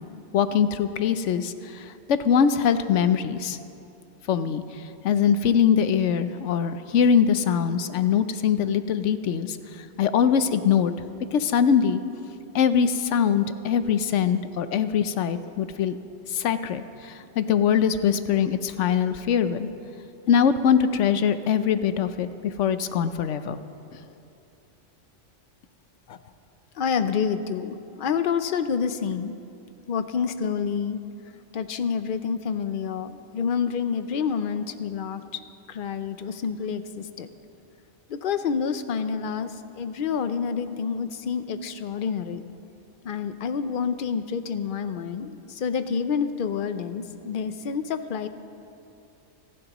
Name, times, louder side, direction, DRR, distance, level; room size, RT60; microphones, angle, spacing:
voice 1, 0.3-3.6 4.3-4.6 5.0-9.6 10.0-10.9 11.3-12.0 12.5-16.0 16.3-19.7 20.3-23.6, left 7 dB, 80° left, 11 dB, 1.0 m, -22 dB
voice 2, 26.8-29.4 29.9-31.0 31.5-35.2 35.7-37.3 38.1-42.4 43.0-48.3, left 6 dB, 55° left, 10 dB, 0.7 m, -28 dB
29.0 x 11.0 x 3.0 m, 2.7 s
omnidirectional pair, 1.2 m